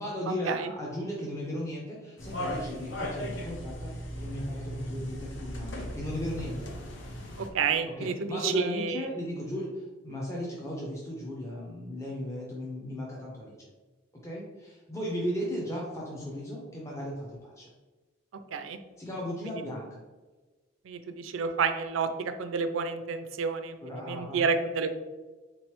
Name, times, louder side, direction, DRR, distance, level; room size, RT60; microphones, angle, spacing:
voice 1, 0.0-3.9 4.2-6.8 8.0-13.7 14.2-17.7 19.0-20.0 23.8-24.4, equal, 15° left, -4 dB, 0.5 m, -36 dB
sound 1, 2.2-7.5, equal, 60° left, 0.6 m, -37 dB
voice 2, 7.4-9.1 18.5-18.8 20.9-23.8 24.0-24.9, right 5 dB, 75° right, 8 dB, 0.4 m, -30 dB
3.8 x 3.0 x 3.0 m, 1.2 s
head